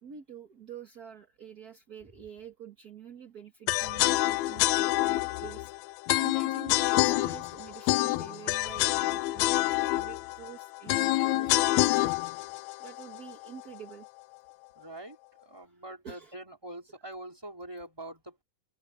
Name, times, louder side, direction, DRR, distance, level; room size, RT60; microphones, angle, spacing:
voice 1, 0.0-5.7 6.2-12.1 12.8-14.1 15.6-16.3, right 7 dB, 40° right, 1.4 m, -47 dB
sound 1, 3.7-13.7, left 17 dB, 85° left, 1.6 m, -27 dB
voice 2, 14.8-18.4, right 1 dB, 5° right, 3.6 m, -44 dB
open air
omnidirectional pair, 3.7 m